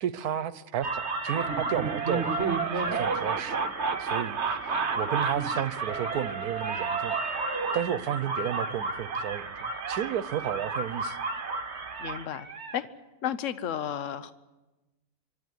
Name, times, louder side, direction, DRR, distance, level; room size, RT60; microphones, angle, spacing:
voice 1, 0.0-3.6 4.0-4.6 5.0-7.2 7.7-11.2, right 9 dB, 80° right, 1.4 m, -32 dB
sound 1, 0.8-12.8, right 4 dB, 50° right, 1.4 m, -31 dB
voice 2, 12.0-12.5 12.7-12.9 13.2-14.3, left 10 dB, 60° left, 1.2 m, -32 dB
25.0 x 11.5 x 9.8 m
omnidirectional pair, 1.6 m